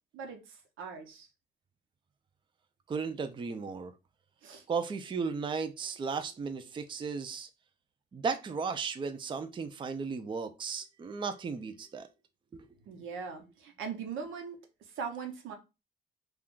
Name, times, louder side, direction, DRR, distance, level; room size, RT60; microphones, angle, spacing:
voice 1, 0.1-1.3 4.4-4.6 12.9-14.6 15.0-15.5, right 6 dB, 85° right, 0.8 m, -40 dB
voice 2, 2.9-3.9 4.7-7.5 8.1-12.1 12.5-12.6, right 5 dB, 25° right, 0.4 m, -35 dB
2.4 x 2.3 x 3.6 m
cardioid pair, 90°, 20 cm